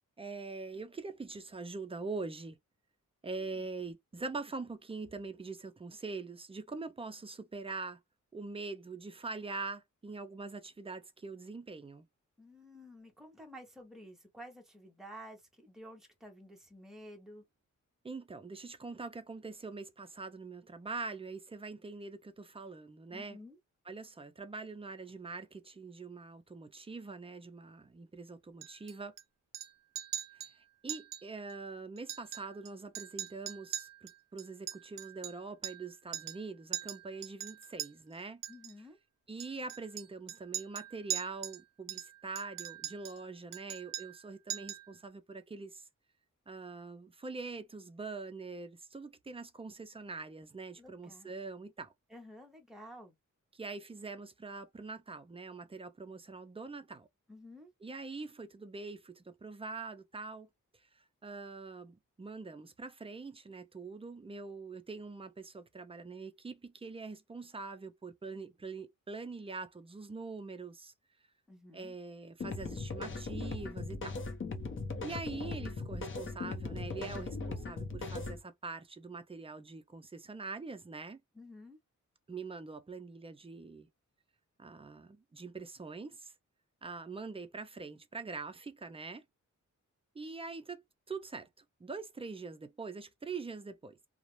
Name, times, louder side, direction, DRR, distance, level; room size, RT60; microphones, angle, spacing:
voice 1, 0.2-2.6 3.2-8.0 8.3-12.1 18.0-23.4 23.9-29.1 30.5-38.4 39.3-45.8 46.5-51.9 53.5-57.1 57.8-60.5 60.9-70.9 71.7-74.2 75.0-81.2 82.3-83.9 84.6-86.3 86.8-89.2 90.1-90.8 91.1-94.0, right 4 dB, 20° right, 0.3 m, -44 dB
voice 2, 12.4-17.4 23.1-23.6 38.5-39.0 50.8-51.3 52.1-53.1 57.3-57.7 71.5-72.0 81.3-81.8, equal, ahead, 0.7 m, -52 dB
Chink clink, 28.6-29.2 29.5-29.7 30.0-30.5 30.9-31.2 31.5-31.6 32.0-32.7 33.0-35.9 36.1-36.4 36.7-37.9 38.4-38.7 39.4-41.6 41.9-43.2 43.5-44.2 44.5-44.9, right 11 dB, 90° right, 0.5 m, -41 dB
sound 1, 72.4-78.4, left 3 dB, 40° left, 0.6 m, -39 dB
2.4 x 2.0 x 2.9 m
wide cardioid pair, 140°, 31 cm